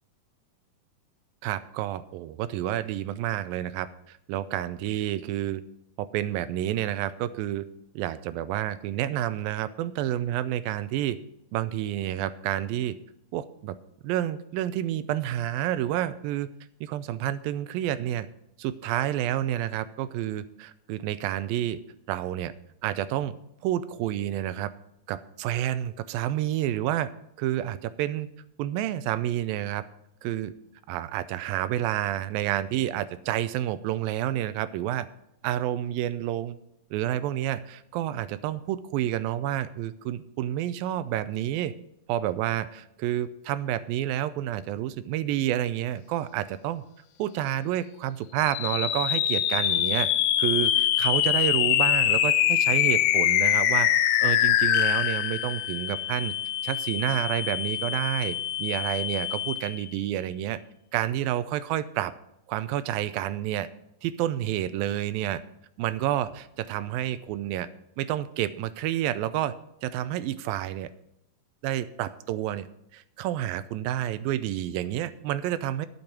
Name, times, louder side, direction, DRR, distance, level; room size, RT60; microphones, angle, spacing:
voice 1, 1.4-5.6 6.0-7.7 8.0-11.2 11.5-13.0 13.3-13.8 14.0-16.5 16.8-18.3 18.6-21.8 22.1-22.5 22.8-24.7 25.1-27.1 27.4-28.3 28.6-29.8 30.2-30.5 30.9-35.1 35.4-36.6 36.9-41.7 42.1-46.8 47.2-50.1 50.4-53.9 54.2-56.3 56.6-60.6 60.9-62.1 62.5-63.7 64.0-65.4 65.8-67.7 68.0-69.6 69.8-70.9 71.6-72.7 72.9-75.9, right 12 dB, 80° right, 14 dB, 2.3 m, -29 dB
sound 1, 48.4-59.9, left 11 dB, 85° left, 2.5 m, -24 dB
11.5 x 7.0 x 6.0 m, 0.78 s
omnidirectional pair, 4.2 m